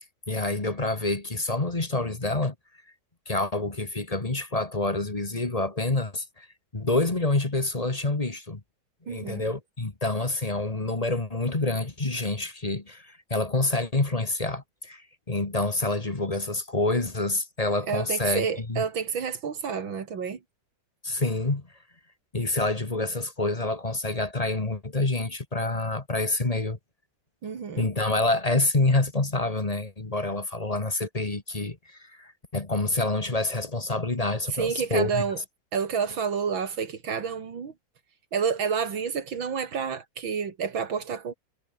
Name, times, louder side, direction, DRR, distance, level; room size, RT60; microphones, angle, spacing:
voice 1, 0.3-2.5 3.2-6.5 6.7-8.6 9.0-18.8 21.0-21.7 22.3-26.8 27.8-35.2, left 2 dB, 20° left, 1.7 m, -27 dB
voice 2, 9.1-9.4 17.9-20.4 27.4-27.9 34.5-35.4 35.7-37.7 38.3-41.3, right 6 dB, 90° right, 3.1 m, -29 dB
omnidirectional pair, 2.1 m